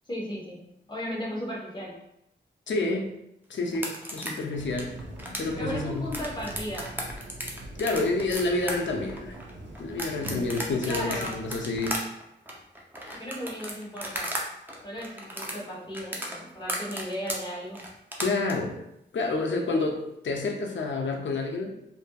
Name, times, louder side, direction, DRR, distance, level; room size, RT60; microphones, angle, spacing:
voice 1, 0.1-0.6 0.9-1.9 5.6-6.9 10.8-11.4 13.1-14.4 14.8-17.9, equal, 25° left, -4 dB, 0.9 m, -35 dB
voice 2, 2.7-3.1 3.5-5.0 5.4-6.1 7.8-9.4 9.8-12.0 13.0-13.3 18.2-18.7 19.1-21.8, left 3 dB, 75° left, 2 dB, 0.5 m, -29 dB
sound 1, 3.7-14.4 14.7-18.5, right 1 dB, 10° right, 0.5 m, -35 dB
sound 2, 4.5-12.0, right 1 dB, 85° right, 0.5 m, -42 dB
2.6 x 2.5 x 2.2 m, 0.81 s
wide cardioid pair, 85°, 19 cm